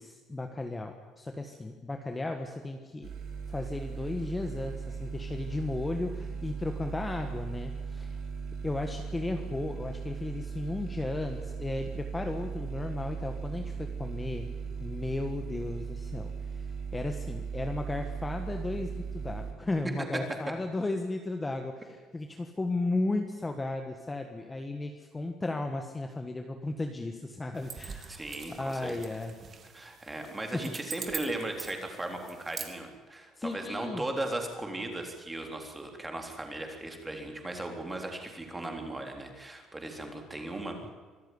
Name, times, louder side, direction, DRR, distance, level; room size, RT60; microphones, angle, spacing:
voice 1, 0.0-3.1 3.5-8.2 8.6-14.5 14.8-16.7 16.9-28.2 28.6-29.3 30.5-30.6 33.4-34.0, left 2 dB, 15° left, 5 dB, 1.5 m, -35 dB
sound 1, 3.0-19.5, right 5 dB, 50° right, 4.8 m, -38 dB
sound 2, 27.6-32.7, right 6 dB, 35° right, 2.7 m, -43 dB
voice 2, 28.1-29.0 29.7-40.8, right 2 dB, 10° right, 3 dB, 3.6 m, -37 dB
25.0 x 14.0 x 9.7 m, 1.5 s
cardioid pair, 160°, 0 cm